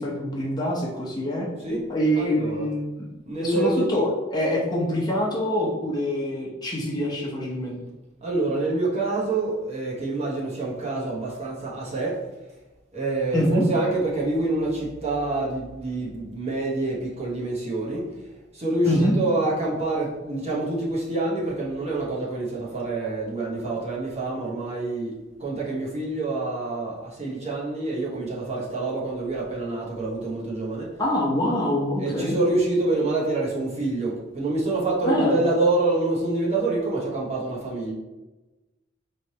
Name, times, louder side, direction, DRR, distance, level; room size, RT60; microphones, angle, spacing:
voice 1, 0.0-1.5 1.9-3.1 3.4-7.8 13.3-13.6 18.8-19.1 31.0-32.4 35.1-35.4, left 1 dB, 20° left, -4 dB, 0.8 m, -25 dB
voice 2, 2.2-2.7 3.3-3.9 8.2-12.2 12.9-18.1 18.5-25.1 25.4-30.9 32.0-37.9, right 2 dB, 35° right, -4 dB, 1.0 m, -26 dB
4.2 x 3.2 x 2.8 m, 1.1 s
head